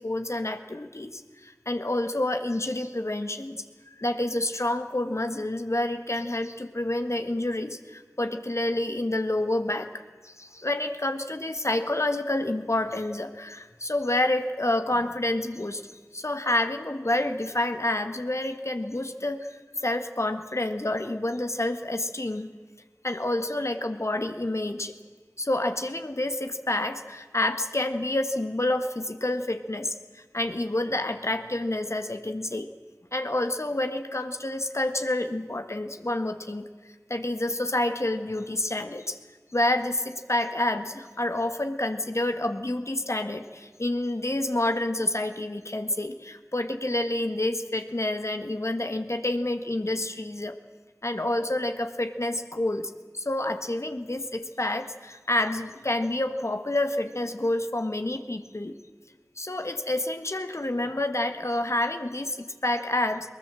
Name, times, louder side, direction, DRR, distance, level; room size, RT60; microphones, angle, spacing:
voice 1, 0.0-15.8 16.1-22.5 23.0-24.9 25.4-32.7 33.1-36.7 37.1-39.2 39.5-50.6 51.0-58.8 59.4-63.3, left 1 dB, 55° left, 8 dB, 1.4 m, -28 dB
21.5 x 19.5 x 7.6 m, 1.5 s
wide cardioid pair, 40°, 6 cm